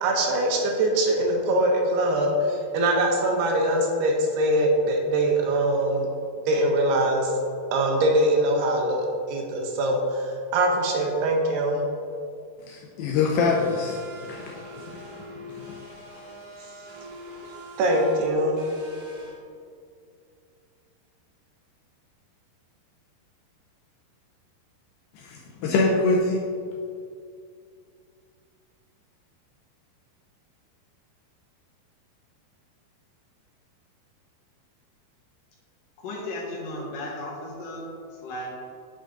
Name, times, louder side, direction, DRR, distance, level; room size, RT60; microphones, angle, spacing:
voice 1, 0.0-6.1 6.5-7.3 7.7-11.8 17.8-18.6, right 1 dB, 75° right, 1 dB, 3.0 m, -23 dB
voice 2, 12.7-14.0 14.3-14.6 15.5-15.7 25.1-26.4, left 3 dB, 85° left, -2 dB, 2.0 m, -24 dB
sound 1, 13.4-19.3, equal, 50° right, 1.9 m, -43 dB
voice 3, 36.0-37.9 38.2-38.5, left 1 dB, 60° left, -4 dB, 2.7 m, -35 dB
9.2 x 6.5 x 3.8 m, 2.3 s
omnidirectional pair, 5.0 m